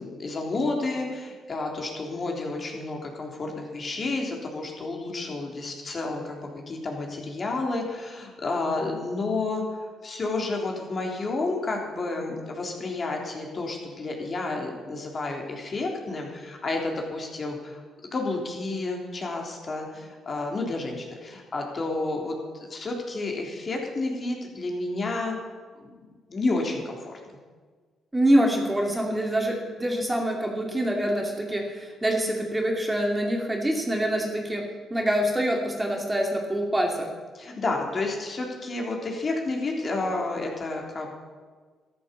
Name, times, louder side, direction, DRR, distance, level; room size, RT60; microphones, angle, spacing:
voice 1, 0.0-9.6 10.0-17.8 18.1-22.4 22.7-25.4 25.8-25.9 26.3-27.2 37.3-41.1, left 3 dB, 40° left, 1 dB, 3.7 m, -30 dB
voice 2, 28.1-37.1, right 1 dB, 15° right, 1 dB, 2.7 m, -25 dB
13.5 x 12.5 x 7.2 m, 1.5 s
cardioid pair, 90°, 0 cm